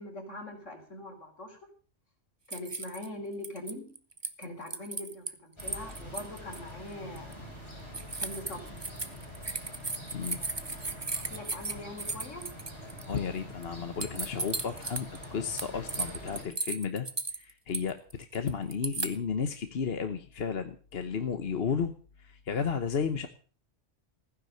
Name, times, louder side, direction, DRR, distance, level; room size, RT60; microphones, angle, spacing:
voice 1, 0.0-1.6 2.5-3.9 4.4-7.4 8.2-8.7 10.4-10.5 11.1-12.4, left 1 dB, 85° left, 3 dB, 4.5 m, -42 dB
sound 1, 2.5-3.1 3.4-5.3 5.6-6.6 7.2-7.3 7.9-13.2 13.6-13.7 14.0-15.3 15.6-19.2, right 3 dB, 25° right, 1.0 m, -35 dB
sound 2, 5.6-16.4, left 1 dB, 20° left, 6.3 m, -45 dB
voice 2, 13.1-17.1 17.3-21.9 22.2-23.3, left 6 dB, 55° left, 8 dB, 1.2 m, -33 dB
15.5 x 10.0 x 6.6 m, 0.41 s
omnidirectional pair, 1.2 m